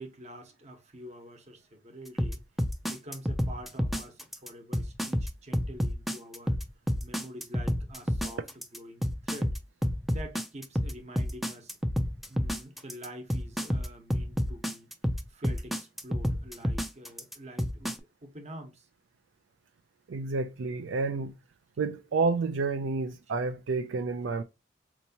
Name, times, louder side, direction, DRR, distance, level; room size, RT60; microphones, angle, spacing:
voice 1, 0.0-2.4 2.8-6.6 7.0-8.4 8.7-9.5 10.1-11.7 12.3-14.9 15.3-18.9, right 1 dB, 35° right, 1.0 m, -46 dB
sound 1, 2.2-18.0, equal, ahead, 0.4 m, -29 dB
voice 2, 20.1-21.4 21.8-24.4, right 4 dB, 75° right, 0.4 m, -30 dB
4.4 x 2.9 x 2.7 m
head